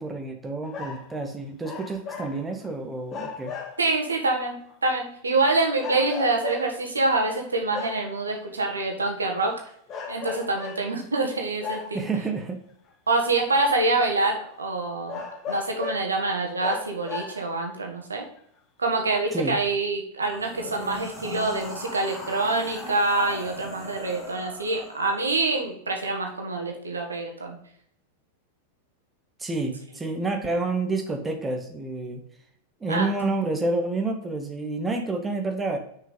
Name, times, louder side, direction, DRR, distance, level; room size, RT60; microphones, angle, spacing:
voice 1, 0.0-3.5 11.9-12.6 19.3-19.6 29.4-32.2 32.8-35.8, right 3 dB, 15° right, 4 dB, 0.9 m, -29 dB
sound 1, 0.6-1.1 1.6-2.7 3.1-4.0 4.7-4.8 5.8-6.9 7.7-8.2 9.2-9.5 9.9-10.9 11.6-12.2 13.1-13.2 13.8-13.9 14.3-14.4 15.1-16.2 16.6-17.6 18.4-18.5, left 5 dB, 30° left, 1.2 m, -36 dB
voice 2, 3.8-9.6 10.1-12.0 13.1-18.3 18.8-27.6 32.9-33.1, right 2 dB, 75° right, 2 dB, 1.4 m, -26 dB
sound 2, 20.3-25.5, left 1 dB, 5° left, 2.3 m, -39 dB
6.1 x 4.8 x 5.1 m, 0.69 s
figure-of-eight pair, 90°, 0 cm